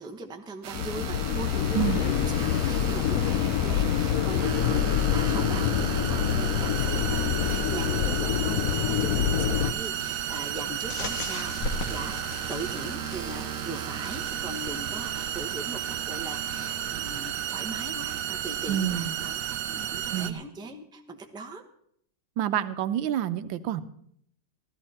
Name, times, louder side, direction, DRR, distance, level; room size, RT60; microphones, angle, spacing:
voice 1, 0.0-12.2 12.5-21.6, right 3 dB, 5° right, 4 dB, 0.6 m, -40 dB
sound 1, 0.6-20.3, right 10 dB, 70° right, 0.8 m, -33 dB
sound 2, 0.7-9.7, left 9 dB, 65° left, 0.9 m, -26 dB
sound 3, 10.9-15.7, left 2 dB, 50° left, 1.5 m, -38 dB
voice 2, 18.7-19.1 20.1-20.4 22.4-23.8, right 10 dB, 85° right, 13 dB, 1.4 m, -28 dB
14.5 x 13.0 x 4.3 m, 0.68 s
omnidirectional pair, 2.1 m